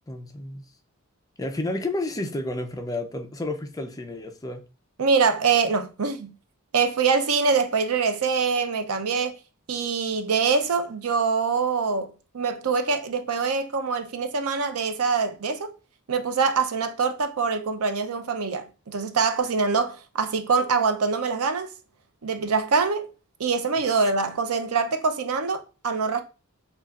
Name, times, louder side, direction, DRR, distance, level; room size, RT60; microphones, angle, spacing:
voice 1, 0.1-0.6 1.4-4.7 24.0-24.1, left 2 dB, 15° left, 0.5 m, -31 dB
voice 2, 5.0-6.3 6.7-9.4 9.7-15.7 16.1-21.7 22.2-23.1 23.4-26.2, right 5 dB, 85° right, 0.6 m, -24 dB
6.8 x 2.4 x 2.4 m
head